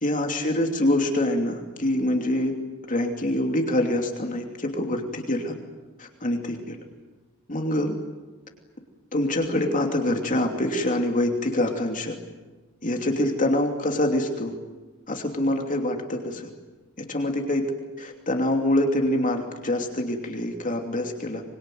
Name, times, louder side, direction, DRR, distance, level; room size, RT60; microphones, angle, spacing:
voice 1, 0.0-2.5 2.9-5.5 6.0-6.8 7.5-8.0 9.1-12.1 12.8-14.5 15.1-16.5 17.0-17.6 18.0-21.4, left 1 dB, 40° left, 3 dB, 2.9 m, -25 dB
25.0 x 22.5 x 9.3 m, 1.2 s
head